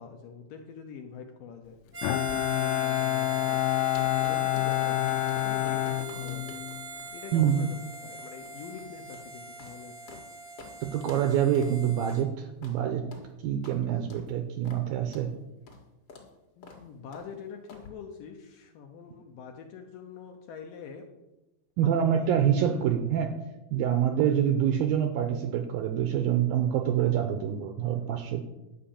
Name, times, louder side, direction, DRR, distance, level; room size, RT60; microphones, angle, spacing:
voice 1, 0.0-1.8 2.3-3.6 4.2-6.6 7.1-10.2 16.6-21.1 21.8-22.9, left 6 dB, 75° left, 4 dB, 2.1 m, -45 dB
Harmonica, 1.9-12.2, right 3 dB, 35° right, 1.0 m, -41 dB
Bowed string instrument, 2.0-6.9, left 17 dB, 90° left, 2.8 m, -28 dB
sound 1, 2.0-10.3 10.6-10.7 11.0-11.3 11.5-11.7 12.1-12.3 12.6-12.8 13.1-13.3 13.6-13.8 14.1-14.3 14.6-14.8 15.1-15.3 15.7-15.8 16.1-16.3 16.6-16.8 17.1-17.3 17.7-17.9, left 3 dB, 45° left, 2.2 m, -49 dB
voice 2, 7.3-7.6 10.8-13.1 13.4-15.3 21.8-23.4 23.7-28.4, right 9 dB, 80° right, 7 dB, 2.2 m, -26 dB
11.5 x 5.8 x 8.6 m, 1.0 s
omnidirectional pair, 4.9 m